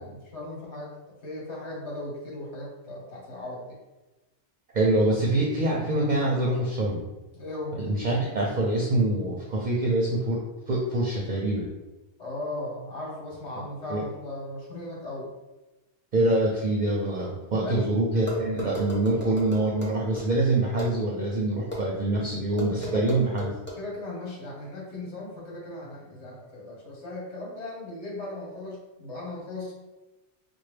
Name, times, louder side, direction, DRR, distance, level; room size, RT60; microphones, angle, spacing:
voice 1, 0.0-3.8 7.3-7.7 12.2-15.3 17.6-17.9 22.9-23.1 23.8-29.7, left 2 dB, 80° left, -4 dB, 1.4 m, -37 dB
voice 2, 4.7-7.0 7.8-11.7 13.5-13.6 13.9-14.0 16.1-23.6, right 2 dB, 50° right, -3 dB, 0.6 m, -25 dB
sound 1, 18.3-20.2 20.8-20.9 21.7-21.8 22.6-23.8, equal, 10° left, 0.7 m, -35 dB
4.5 x 2.2 x 3.3 m, 1.1 s
omnidirectional pair, 1.1 m